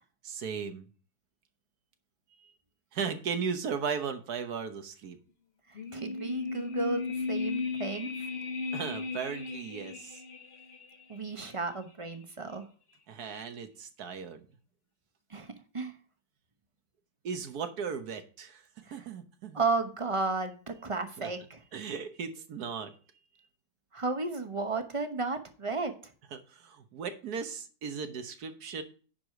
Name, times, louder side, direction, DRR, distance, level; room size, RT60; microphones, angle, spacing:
voice 1, 0.2-0.9 2.4-2.5 2.9-5.2 8.7-10.2 13.1-14.5 17.2-18.6 18.9-19.6 21.2-21.3 21.7-23.0 26.3-28.8, right 6 dB, 65° right, 1.4 m, -36 dB
sound 1, 5.7-11.0 11.3-11.4, left 4 dB, 40° left, 1.2 m, -36 dB
voice 2, 5.7-7.0 7.3-8.3 11.1-12.7 15.3-15.9 18.9-19.0 19.5-21.6 23.9-25.9, right 3 dB, 25° right, 0.7 m, -33 dB
10.5 x 4.8 x 4.7 m
omnidirectional pair, 1.8 m